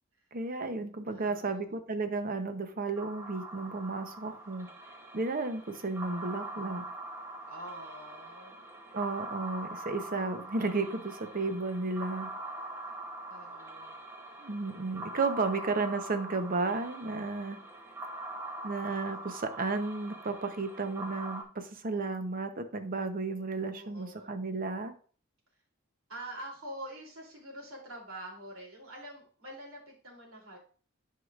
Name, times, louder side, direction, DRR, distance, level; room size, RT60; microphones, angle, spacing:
voice 1, 0.3-4.7 5.1-6.9 8.9-12.3 14.4-17.6 18.6-24.9, right 3 dB, 45° right, 8 dB, 0.8 m, -33 dB
voice 2, 1.1-1.7 7.5-8.6 12.7-14.0 15.6-15.7 23.7-24.3 26.1-30.6, right 1 dB, 80° right, -2 dB, 2.9 m, -46 dB
sound 1, 3.0-21.4, right 2 dB, 10° right, 0.9 m, -43 dB
11.0 x 4.8 x 2.4 m, 0.42 s
head